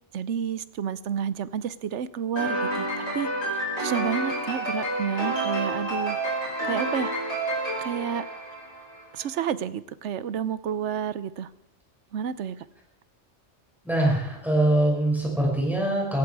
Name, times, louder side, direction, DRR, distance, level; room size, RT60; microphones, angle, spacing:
voice 1, 0.1-6.2 6.6-7.2 7.8-8.2 9.1-11.5 12.1-12.6, right 8 dB, 75° right, 16 dB, 1.0 m, -30 dB
sound 1, 2.4-9.0, right 1 dB, 60° left, 6.5 m, -29 dB
voice 2, 13.8-16.2, right 1 dB, ahead, -3 dB, 6.2 m, -23 dB
18.5 x 15.5 x 4.7 m, 0.81 s
omnidirectional pair, 1.2 m